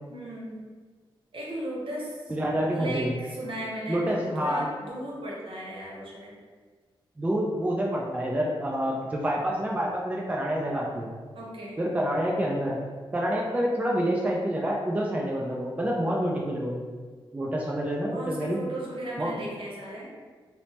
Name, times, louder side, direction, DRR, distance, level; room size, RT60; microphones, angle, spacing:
voice 1, 0.1-0.7 1.3-2.3 2.7-6.3 11.3-11.8 18.1-20.1, right 1 dB, 65° right, -4 dB, 0.8 m, -36 dB
voice 2, 2.3-3.1 3.9-4.7 7.2-11.1 11.8-12.8 13.1-16.8 17.3-18.6 19.2-19.3, equal, 15° right, -2 dB, 0.3 m, -27 dB
3.1 x 2.0 x 2.7 m, 1.5 s
wide cardioid pair, 100°, 9 cm